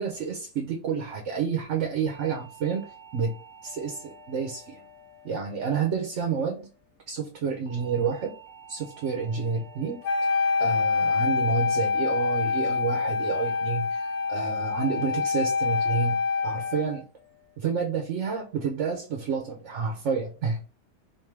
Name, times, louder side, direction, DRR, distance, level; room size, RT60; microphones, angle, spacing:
voice 1, 0.0-2.9 3.1-3.3 3.6-4.8 5.2-6.6 7.1-8.3 8.7-10.3 10.6-14.0 14.3-16.2 16.4-17.0 17.6-20.6, right 6 dB, 55° right, 2 dB, 0.9 m, -29 dB
sound 1, 2.1-6.5 7.7-12.1 13.3-13.6 14.0-14.4 14.8-15.2 15.6-16.0 16.4-16.8 17.2-17.6, right 2 dB, 5° left, 1.0 m, -51 dB
Wind instrument woodwind instrument, 10.0-17.0, left 4 dB, 75° left, 1.3 m, -26 dB
3.5 x 2.6 x 4.5 m, 0.35 s
omnidirectional pair, 1.7 m